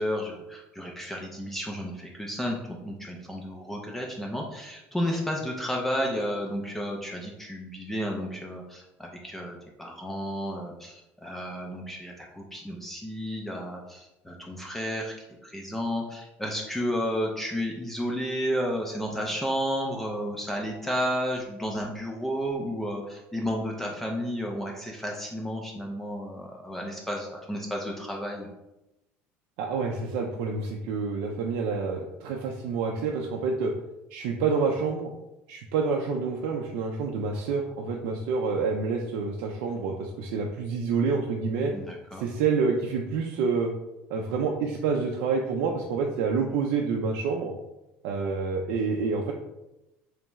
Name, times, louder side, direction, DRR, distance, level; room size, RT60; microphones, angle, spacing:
voice 1, 0.0-28.5 41.7-42.2, equal, 5° left, -1 dB, 0.3 m, -32 dB
voice 2, 29.6-33.7 34.1-35.1 35.5-41.7 42.2-43.7 44.1-47.5 48.0-49.3, right 5 dB, 75° right, 0 dB, 0.4 m, -28 dB
3.5 x 3.2 x 3.0 m, 0.93 s
cardioid pair, 165°, 5 cm